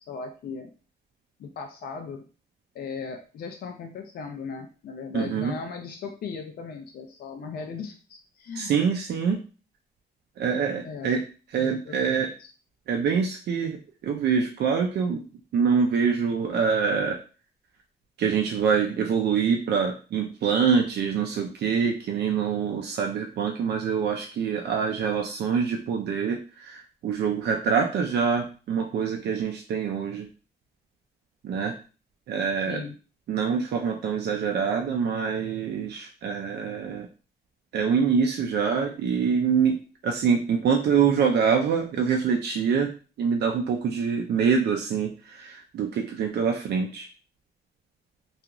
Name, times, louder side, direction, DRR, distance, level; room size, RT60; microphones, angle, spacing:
voice 1, 0.1-0.7 1.4-2.2 2.7-8.7 10.8-11.2 11.6-12.5 32.7-32.9, left 5 dB, 65° left, 4 dB, 0.4 m, -37 dB
voice 2, 5.1-5.5 8.6-9.4 10.4-11.2 11.5-12.3 12.9-15.2 15.5-17.2 18.2-30.3 31.4-31.7 32.3-32.8 33.3-37.1 37.7-39.8 40.0-42.9 43.2-47.1, right 6 dB, 75° right, 2 dB, 0.4 m, -25 dB
2.8 x 2.4 x 2.4 m, 0.35 s
wide cardioid pair, 165°, 17 cm